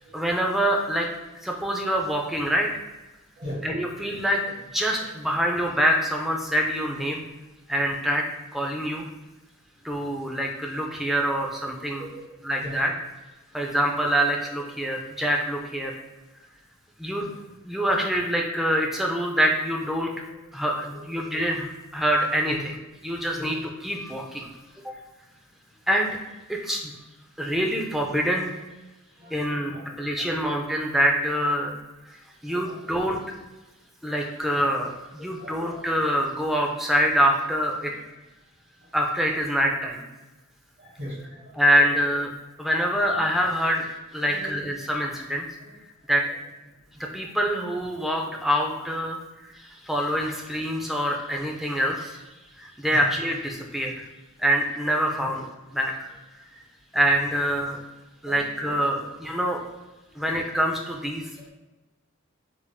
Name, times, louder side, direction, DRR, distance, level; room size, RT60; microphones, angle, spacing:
voice 1, 0.1-1.1 1.4-2.8 3.6-7.2 7.7-8.2 8.5-9.1 9.8-12.1 12.4-12.9 13.5-15.9 17.0-17.4 17.6-20.2 20.5-22.5 23.0-23.6 23.8-24.5 25.9-26.2 26.5-26.9 27.4-28.5 29.3-31.8 32.1-32.2 32.4-33.2 34.0-37.9 38.9-40.0 41.5-42.3 42.6-45.5 46.1-46.2 47.1-49.2 49.5-52.2 52.6-54.0 54.4-55.5 55.7-56.1 56.9-57.8 58.2-59.6 60.2-61.5, equal, ahead, 0 dB, 0.3 m, -25 dB
voice 2, 3.4-3.8 11.4-11.5 12.0-12.3 12.6-12.7 20.6-20.8 21.0-21.1 23.4-23.5 29.2-29.8 30.2-30.4 32.6-32.9 35.4-35.8 40.8-41.6 42.7-42.8 44.3-44.5 45.6-45.7 52.9-53.0 58.2-59.1, equal, 50° right, -7 dB, 1.3 m, -40 dB
3.6 x 3.4 x 2.2 m, 1.1 s
head